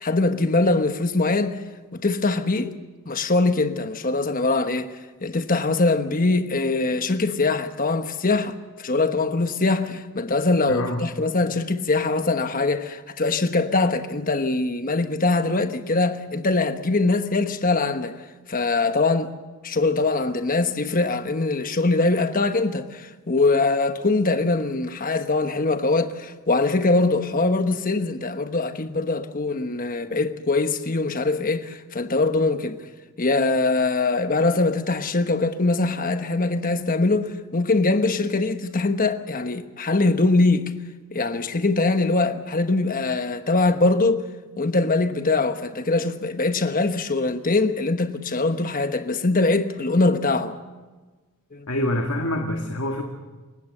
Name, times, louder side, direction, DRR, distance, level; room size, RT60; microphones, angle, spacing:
voice 1, 0.0-1.6 1.9-2.8 3.1-4.9 5.2-18.2 18.5-19.3 19.6-32.8 33.2-40.7 41.1-44.2 44.6-50.6 51.5-51.7, left 3 dB, 40° left, 1.2 m, -22 dB
voice 2, 10.7-11.0 51.7-53.0, left 1 dB, 70° left, 1.9 m, -26 dB
28.5 x 16.0 x 6.7 m
head